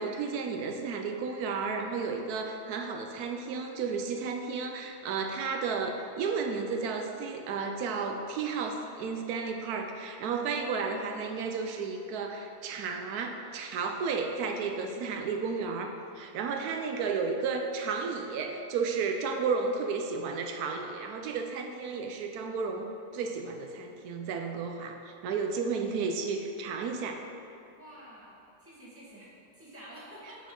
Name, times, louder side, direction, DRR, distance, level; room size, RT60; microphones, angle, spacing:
voice 1, 0.0-27.3, right 5 dB, 85° right, 4 dB, 1.1 m, -33 dB
voice 2, 27.7-30.5, right 1 dB, 10° right, -7 dB, 1.3 m, -49 dB
6.3 x 5.9 x 3.8 m, 2.6 s
omnidirectional pair, 1.6 m